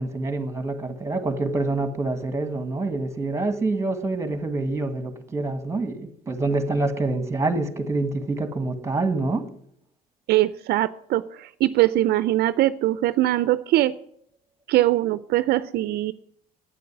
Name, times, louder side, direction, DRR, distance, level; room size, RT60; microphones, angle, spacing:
voice 1, 0.0-9.4, right 2 dB, 15° right, 1.8 m, -26 dB
voice 2, 10.3-13.9 14.7-16.1, right 15 dB, 70° right, 0.5 m, -22 dB
9.3 x 8.3 x 9.6 m
cardioid pair, 110°, 17 cm